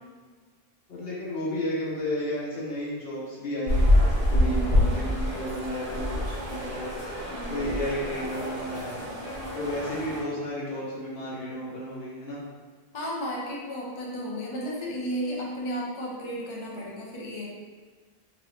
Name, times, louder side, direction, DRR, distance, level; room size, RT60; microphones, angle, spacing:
voice 1, 0.9-6.9 7.5-9.0 9.5-12.4, equal, 70° left, -6 dB, 1.1 m, -33 dB
sound 1, 3.7-10.2, left 1 dB, 35° right, 1.2 m, -26 dB
voice 2, 4.3-5.1 7.3-7.8 12.9-17.4, equal, 35° left, -4 dB, 0.5 m, -34 dB
3.0 x 2.5 x 3.1 m, 1.5 s
omnidirectional pair, 1.1 m